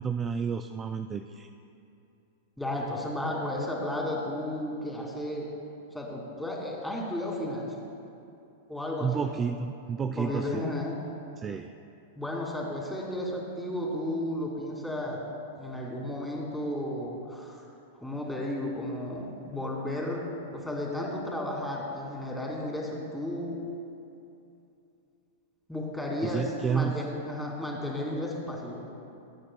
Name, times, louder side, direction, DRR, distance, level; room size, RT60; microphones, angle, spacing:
voice 1, 0.0-1.5 9.0-10.6 11.4-11.7 26.2-27.0, right 6 dB, 25° right, 7 dB, 0.4 m, -31 dB
voice 2, 2.6-5.5 5.9-7.7 8.7-9.3 10.1-10.9 12.1-15.2 15.5-17.6 18.0-23.6 25.7-28.8, left 1 dB, 5° left, -3 dB, 2.6 m, -33 dB
22.0 x 8.6 x 2.3 m, 2.7 s
hypercardioid pair, 110°, 0 cm